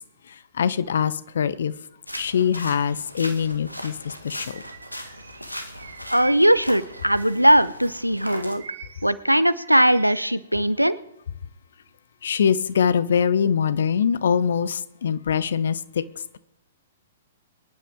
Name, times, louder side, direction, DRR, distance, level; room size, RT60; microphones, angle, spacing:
voice 1, 0.5-1.7 2.2-4.6 12.2-16.0, left 7 dB, 60° left, 0.9 m, -23 dB
sound 1, 2.1-8.6, equal, 90° left, 1.8 m, -38 dB
Bird vocalization bird call bird song, 4.4-7.7 8.2-10.4, right 6 dB, 60° right, 1.5 m, -44 dB
voice 2, 6.1-8.6 9.0-11.0, equal, 90° right, 0.8 m, -19 dB
24.0 x 11.0 x 3.7 m
figure-of-eight pair, 110°, 0 cm